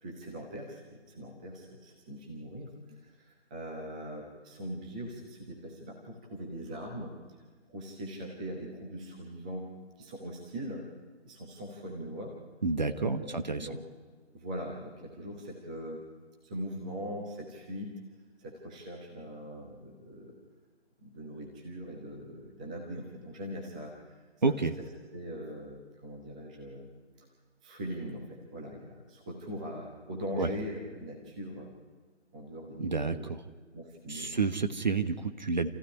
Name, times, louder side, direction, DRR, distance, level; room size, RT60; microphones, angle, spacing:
voice 1, 0.0-7.1 7.7-9.7 10.0-10.8 11.2-12.3 12.9-13.8 14.3-16.0 16.4-17.9 18.4-20.4 21.0-24.2 24.5-24.8 25.1-26.9 27.2-27.3 27.6-31.7 32.3-33.3 33.7-34.7, equal, 5° right, -1 dB, 1.1 m, -41 dB
voice 2, 12.6-13.7 24.4-24.7 30.4-30.5 32.8-33.4 34.1-35.7, right 4 dB, 40° right, 8 dB, 1.2 m, -29 dB
28.0 x 15.0 x 9.8 m, 1.4 s
figure-of-eight pair, 160°, 35 cm